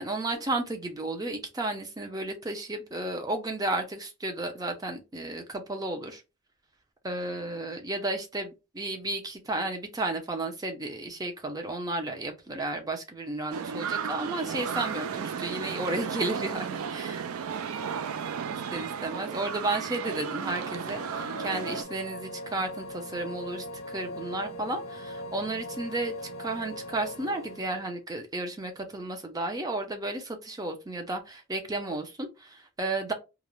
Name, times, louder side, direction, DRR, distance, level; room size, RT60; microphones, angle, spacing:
voice 1, 0.0-6.2 7.0-17.2 18.5-33.1, right 2 dB, 15° right, 0.4 m, -33 dB
sound 1, 13.5-21.8, right 7 dB, 80° right, 0.3 m, -34 dB
sound 2, 20.2-28.0, left 1 dB, 75° left, 0.6 m, -40 dB
2.4 x 2.0 x 3.0 m
head